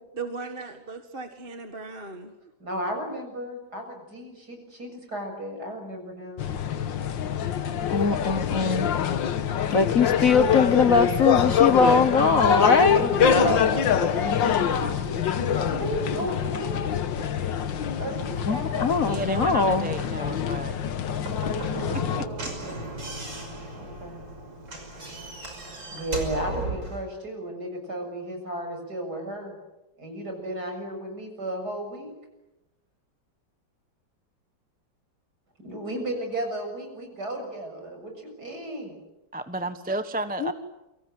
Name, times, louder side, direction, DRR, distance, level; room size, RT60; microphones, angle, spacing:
voice 1, 0.1-2.3, right 4 dB, 30° right, 6 dB, 1.9 m, -37 dB
voice 2, 2.6-6.5 12.9-16.9 18.0-18.9 21.9-22.7 23.4-24.2 25.9-29.6 30.0-32.1 35.6-39.0, right 1 dB, 55° right, 4 dB, 7.6 m, -34 dB
sound 1, 6.4-22.3, left 8 dB, 80° left, 1.9 m, -25 dB
voice 3, 7.9-8.9 9.7-13.0 13.3-13.8 18.5-19.9 40.4-40.5, left 4 dB, 50° left, 11 dB, 1.6 m, -21 dB
voice 4, 19.1-20.7 21.9-22.3 39.3-40.5, right 2 dB, 5° right, 9 dB, 1.1 m, -32 dB
Slam / Knock, 21.2-27.0, right 2 dB, 80° right, 6.6 m, -35 dB
29.5 x 24.5 x 7.8 m, 0.94 s
omnidirectional pair, 2.0 m